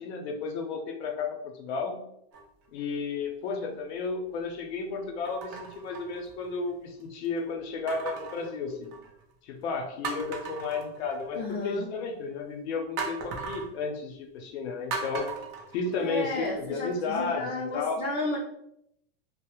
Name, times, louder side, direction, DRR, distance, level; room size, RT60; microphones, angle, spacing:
voice 1, 0.0-2.0 2.7-8.9 9.4-15.3 15.7-18.0, left 4 dB, 85° left, 2 dB, 0.6 m, -33 dB
sound 1, 2.3-2.8 3.5-3.6 5.3-6.7 7.9-9.2 9.6-9.7 10.0-11.5 13.0-13.7 14.9-16.5 16.9-17.0, right 5 dB, 40° right, 0.4 m, -38 dB
voice 2, 11.3-11.9 16.0-18.4, left 2 dB, 35° left, -3 dB, 0.4 m, -32 dB
2.3 x 2.0 x 2.9 m, 0.77 s
supercardioid pair, 150°, 32 cm